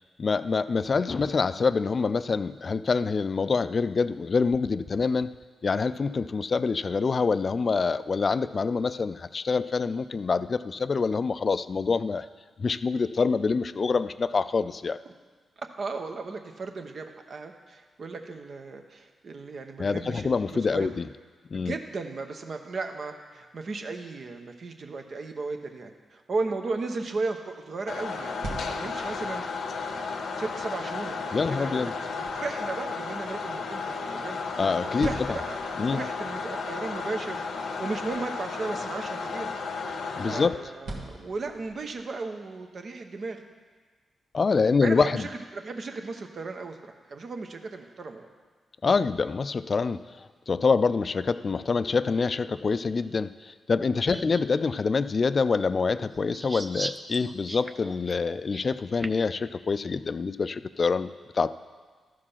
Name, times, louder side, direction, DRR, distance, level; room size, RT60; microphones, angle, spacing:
voice 1, 0.2-5.3 5.6-12.3 12.6-15.0 19.8-21.1 21.5-21.7 31.3-31.9 34.6-35.4 35.8-36.0 40.1-40.6 44.3-45.3 48.8-61.5, left 4 dB, 50° left, 14 dB, 0.3 m, -26 dB
voice 2, 15.6-20.9 21.5-29.5 30.4-34.4 35.0-35.6 35.9-37.4 37.8-39.5 39.9-43.4 44.8-48.3 54.1-54.3, right 3 dB, 60° right, 5 dB, 1.0 m, -35 dB
sound 1, 27.9-40.5, left 4 dB, 70° left, 0.7 m, -33 dB
sound 2, 28.1-42.1, right 2 dB, 80° right, 1.4 m, -46 dB
sound 3, 54.1-54.4 55.0-55.2 56.1-59.3, right 1 dB, 25° right, 0.6 m, -39 dB
13.0 x 5.0 x 5.6 m, 1.5 s
supercardioid pair, 45°, 0 cm